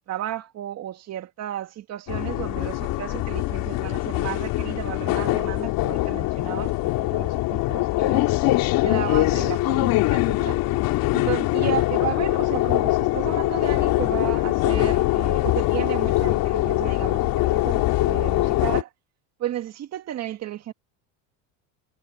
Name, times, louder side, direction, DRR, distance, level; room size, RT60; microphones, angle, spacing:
voice 1, 0.0-8.3 8.8-10.6 11.1-18.9 19.4-20.7, right 12 dB, 40° right, 2.0 m, -33 dB
London Underground, 2.1-18.8, left 18 dB, 55° left, 2.8 m, -23 dB
cardioid pair, 140°, 41 cm